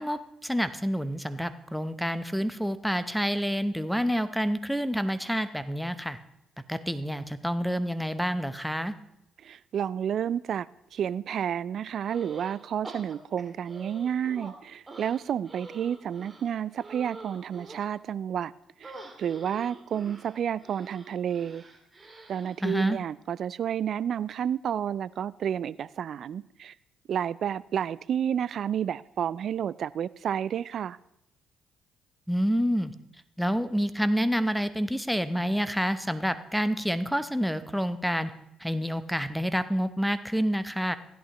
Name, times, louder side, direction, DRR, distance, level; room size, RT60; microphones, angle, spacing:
voice 1, 0.0-6.2 6.7-8.9 22.6-23.0 32.3-32.9 33.4-38.3 38.6-41.0, equal, ahead, 0.8 m, -28 dB
voice 2, 9.4-18.5 18.8-21.6 22.3-26.7 27.1-31.0, right 9 dB, 60° right, 0.3 m, -30 dB
sound 1, 12.1-12.6 12.8-14.5 14.9-17.9 18.8-22.6, right 2 dB, 25° right, 2.3 m, -46 dB
16.0 x 11.0 x 3.0 m
hypercardioid pair, 50°, 0 cm